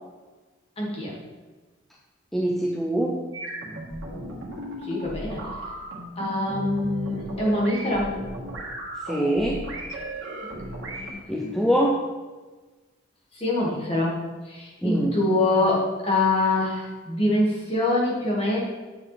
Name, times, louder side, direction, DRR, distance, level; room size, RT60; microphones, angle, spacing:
voice 1, 0.8-1.2 4.9-5.4 6.2-8.1 10.9-11.5 13.3-18.6, left 2 dB, 30° left, -4 dB, 1.9 m, -25 dB
voice 2, 2.3-3.2 9.1-9.6 11.3-12.0 14.8-15.1, right 1 dB, ahead, -2 dB, 0.5 m, -23 dB
sound 1, 3.3-11.1, right 1 dB, 85° right, 1.7 m, -35 dB
9.0 x 6.4 x 3.4 m, 1.3 s
head